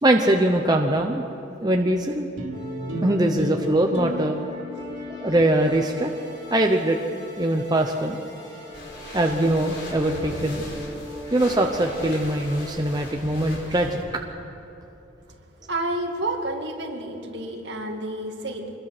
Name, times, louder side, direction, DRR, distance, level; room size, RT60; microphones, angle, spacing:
voice 1, 0.0-1.2 1.6-2.3 2.9-4.4 5.2-6.1 6.5-7.0 7.4-8.2 9.1-10.6 11.3-14.0, right 1 dB, 20° right, 2 dB, 0.9 m, -22 dB
sound 1, 2.4-7.0, equal, 90° right, 2.9 m, -36 dB
sound 2, 2.5-12.7, left 1 dB, 20° left, 7.5 m, -39 dB
sound 3, 8.7-14.0, left 1 dB, 60° left, 4.5 m, -38 dB
voice 2, 15.7-18.7, right 1 dB, 60° right, 2 dB, 2.3 m, -30 dB
25.0 x 21.5 x 6.1 m, 2.8 s
head